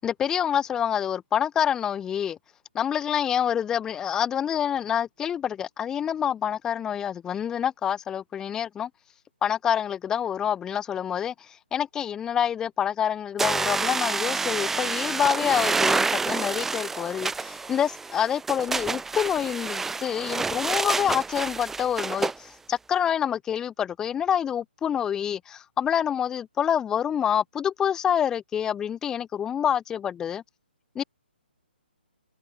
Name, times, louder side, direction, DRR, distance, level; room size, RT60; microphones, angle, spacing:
voice 1, 0.0-2.4 2.7-8.9 9.4-30.4 31.0-31.1, left 9 dB, 10° left, 0.5 m, -27 dB
sound 1, 13.4-22.4, right 4 dB, 5° right, 1.0 m, -28 dB
hypercardioid pair, 145°, 6 cm